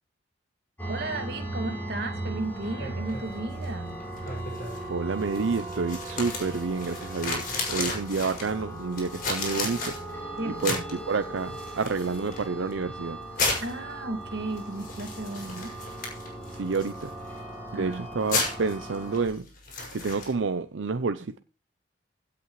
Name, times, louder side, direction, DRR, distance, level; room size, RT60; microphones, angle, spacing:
sound 1, 0.8-19.2, right 1 dB, 10° left, 3.9 m, -38 dB
voice 1, 0.9-4.0 10.4-10.8 13.6-15.7 17.7-18.0, right 2 dB, 60° right, 2.2 m, -34 dB
sound 2, 2.4-20.3, left 3 dB, 50° left, 5.8 m, -36 dB
voice 2, 4.9-10.0 10.5-13.2 16.6-17.1 17.7-19.5 19.9-21.4, right 4 dB, 90° right, 0.6 m, -29 dB
16.5 x 8.4 x 3.2 m
head